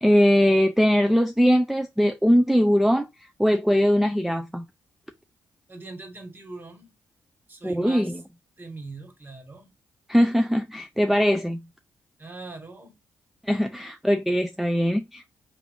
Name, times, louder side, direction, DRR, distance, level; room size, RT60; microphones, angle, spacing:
voice 1, 0.0-3.1 3.4-4.6 7.6-8.2 10.1-11.6 13.5-15.3, equal, 5° right, 0.4 m, -21 dB
voice 2, 5.7-6.9 7.5-8.2 8.6-9.7 12.2-12.9, right 3 dB, 25° right, 1.7 m, -41 dB
3.6 x 2.6 x 4.6 m
supercardioid pair, 55°, 7 cm